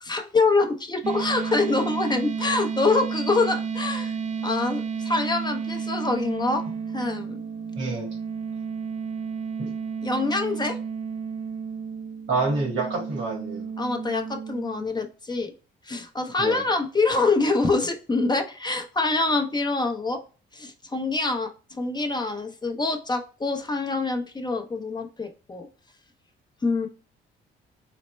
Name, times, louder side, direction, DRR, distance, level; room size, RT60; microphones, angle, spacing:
voice 1, 0.0-4.2 4.4-6.6 6.9-7.4 10.0-10.8 13.8-15.5 15.8-20.2 20.5-25.7 26.6-26.9, left 3 dB, 20° left, 0.6 m, -25 dB
sound 1, 1.0-14.9, right 6 dB, 40° right, 0.4 m, -32 dB
voice 2, 7.8-8.1 9.6-9.7 12.3-13.6 16.4-16.6, right 3 dB, 85° right, 1.8 m, -27 dB
4.1 x 2.1 x 3.1 m
cardioid pair, 90°, 20 cm